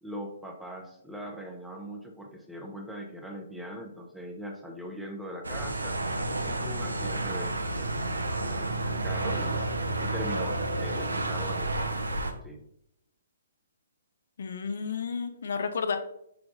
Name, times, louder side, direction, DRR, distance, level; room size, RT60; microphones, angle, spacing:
voice 1, 0.0-6.0 6.4-8.0 8.4-9.7 10.0-12.0 12.4-12.6, equal, ahead, 0 dB, 0.6 m, -41 dB
sound 1, 5.4-12.3, right 2 dB, 85° right, 0.6 m, -30 dB
voice 2, 14.4-16.0, left 5 dB, 65° left, 7 dB, 0.6 m, -31 dB
5.9 x 3.2 x 2.5 m, 0.76 s
figure-of-eight pair, 130°, 0 cm